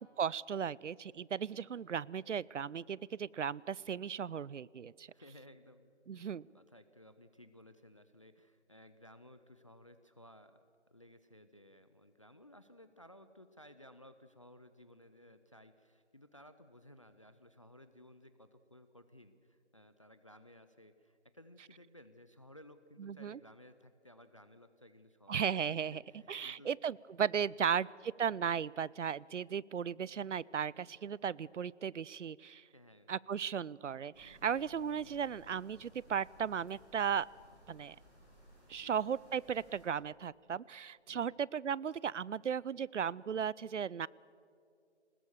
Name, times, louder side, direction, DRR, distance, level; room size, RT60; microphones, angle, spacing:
voice 1, 0.0-5.1 6.1-6.5 23.0-23.4 25.3-26.0 26.3-32.6 33.1-37.3 37.7-38.0 38.7-44.1, right 7 dB, 80° right, 24 dB, 0.5 m, -36 dB
voice 2, 5.1-10.6 10.9-25.4 25.7-26.7 27.6-27.8 32.7-33.1 34.1-34.4 38.7-38.9 41.1-41.4, left 1 dB, 30° left, 11 dB, 0.5 m, -58 dB
sound 1, 34.1-39.9, equal, 5° right, 4.1 m, -61 dB
21.0 x 20.0 x 7.1 m, 2.4 s
figure-of-eight pair, 155°, 36 cm